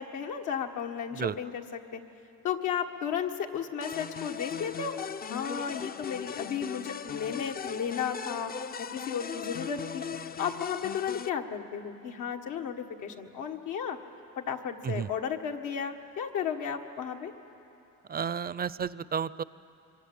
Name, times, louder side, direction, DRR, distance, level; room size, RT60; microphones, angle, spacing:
voice 1, 0.0-2.0 2.4-4.9 5.3-8.5 8.8-10.0 10.4-14.0 14.4-17.3, left 7 dB, 85° left, 4 dB, 1.7 m, -34 dB
sound 1, 3.8-11.3, left 7 dB, 30° left, 0.5 m, -38 dB
voice 2, 18.1-19.4, right 7 dB, 30° right, 18 dB, 0.5 m, -32 dB
25.0 x 23.0 x 8.7 m, 2.8 s
cardioid pair, 90°, 30 cm